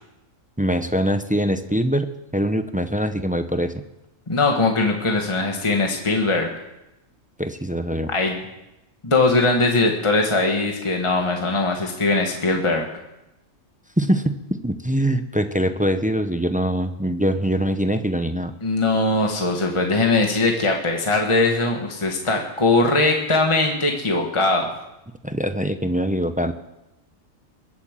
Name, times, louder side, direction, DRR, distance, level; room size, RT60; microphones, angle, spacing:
voice 1, 0.6-3.8 7.4-8.1 14.0-14.3 14.6-18.5 25.2-26.5, equal, 10° right, 9 dB, 0.6 m, -23 dB
voice 2, 4.3-6.5 8.1-8.4 9.0-12.9 18.6-24.7, left 2 dB, 25° left, 2 dB, 1.5 m, -20 dB
22.0 x 8.8 x 7.5 m, 0.94 s
omnidirectional pair, 1.4 m